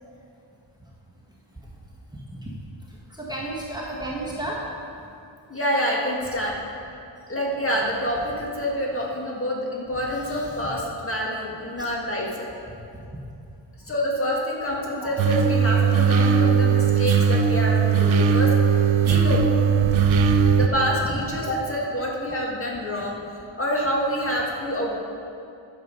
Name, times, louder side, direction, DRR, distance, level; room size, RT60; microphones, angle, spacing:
voice 1, 2.1-2.5 2.9-4.6 10.2-10.7 12.9-13.0 14.9-15.1 21.0-21.2, right 1 dB, 10° right, -5 dB, 1.3 m, -34 dB
voice 2, 5.5-6.5 7.3-12.5 13.9-18.5 19.0-19.4 20.6-23.2 23.6-25.0, equal, 30° left, -3 dB, 1.8 m, -27 dB
sound 1, 15.2-20.7, right 6 dB, 80° right, 0.7 m, -19 dB
11.5 x 6.7 x 5.3 m, 2.6 s
wide cardioid pair, 140°, 46 cm